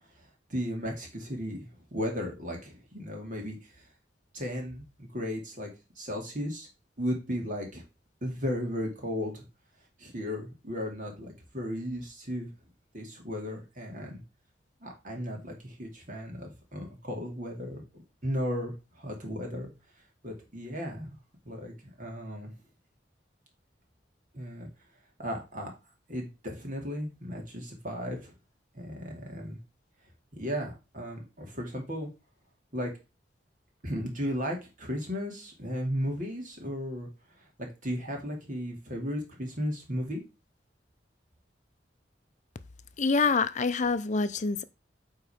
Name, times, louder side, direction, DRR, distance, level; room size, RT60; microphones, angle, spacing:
voice 1, 0.5-3.6 4.3-5.7 6.0-6.7 7.0-7.8 8.2-9.5 10.0-12.5 12.9-14.2 14.8-17.8 18.2-19.7 20.2-21.2 21.4-22.5 24.3-24.7 25.2-25.7 26.1-28.3 28.7-29.6 30.3-32.1 32.7-32.9 33.8-37.1 37.6-40.2, equal, 50° right, 2.7 m, -35 dB
voice 2, 43.0-44.6, left 4 dB, 45° left, 0.6 m, -26 dB
8.9 x 4.0 x 5.1 m
head